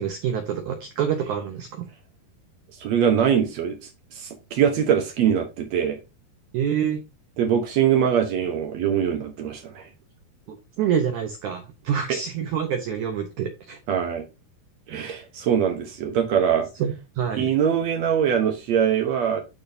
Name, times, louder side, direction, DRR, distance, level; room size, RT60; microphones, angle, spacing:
voice 1, 0.0-1.8 6.5-7.0 10.5-13.8 14.9-15.2 16.8-17.5, right 8 dB, 90° right, 1.7 m, -27 dB
voice 2, 2.8-3.8 4.1-6.0 7.4-9.9 13.9-14.3 14.9-16.7 17.4-19.4, right 8 dB, 75° right, 1.6 m, -22 dB
12.0 x 4.2 x 2.7 m
omnidirectional pair, 4.6 m